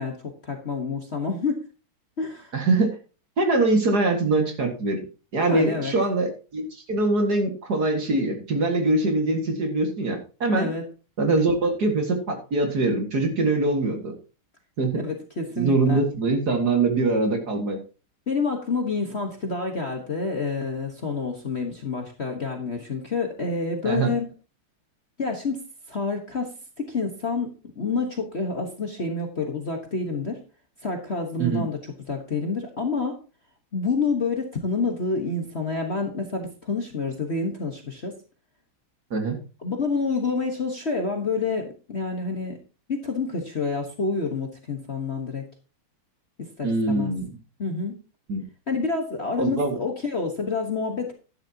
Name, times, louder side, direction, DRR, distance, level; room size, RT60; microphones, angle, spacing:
voice 1, 0.0-1.6 2.2-2.5 5.4-5.9 10.5-10.8 15.0-16.0 18.3-24.3 25.2-25.6 25.9-26.5 26.8-30.4 30.8-31.8 32.1-33.2 33.7-38.1 39.6-42.6 42.9-45.5 46.4-47.1 47.6-48.0 48.7-51.1, left 4 dB, 35° left, 3 dB, 1.3 m, -28 dB
voice 2, 2.5-2.9 3.4-5.0 5.3-10.7 11.2-14.1 14.8-14.9 15.6-17.8 23.8-24.1 31.4-31.7 39.1-39.4 46.6-47.3 48.3-48.4 49.4-49.8, right 2 dB, 45° right, 4 dB, 2.4 m, -23 dB
11.5 x 10.5 x 2.9 m, 0.34 s
omnidirectional pair, 2.4 m